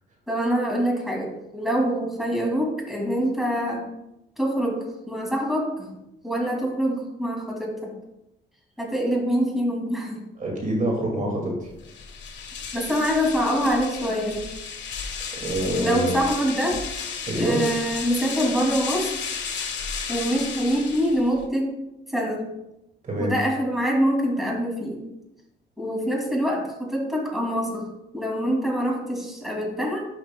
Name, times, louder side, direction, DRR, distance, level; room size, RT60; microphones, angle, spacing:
voice 1, 0.3-3.9 4.4-4.8 5.1-5.9 6.2-7.9 8.8-10.2 12.7-14.4 15.8-16.8 17.3-19.3 20.1-21.7 22.1-22.5 23.2-25.0 25.8-27.9 28.1-30.1, equal, ahead, -2 dB, 2.5 m, -25 dB
voice 2, 10.4-11.7 15.4-16.1 17.3-17.6 23.0-23.3, right 1 dB, 40° right, -1 dB, 2.1 m, -25 dB
sound 1, 11.8-21.5, left 6 dB, 65° left, 1.3 m, -33 dB
11.5 x 5.9 x 2.2 m, 0.91 s
cardioid pair, 90°, 20 cm